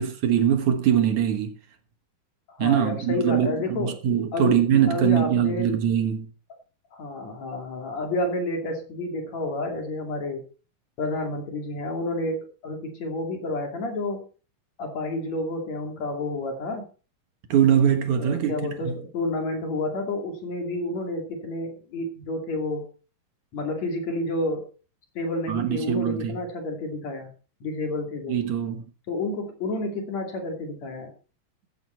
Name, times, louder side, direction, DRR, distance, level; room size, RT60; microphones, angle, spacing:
voice 1, 0.0-1.5 2.6-6.3 17.5-18.9 25.5-26.4 28.3-28.8, right 9 dB, 65° right, 2.6 m, -22 dB
voice 2, 2.5-4.0 4.3-4.6 4.9-5.8 6.9-10.4 11.0-14.2 14.8-16.8 18.2-22.9 23.5-24.7 25.2-27.3 27.6-28.4 29.1-31.1, left 2 dB, 55° left, 3.7 m, -30 dB
14.5 x 9.6 x 4.4 m
omnidirectional pair, 3.8 m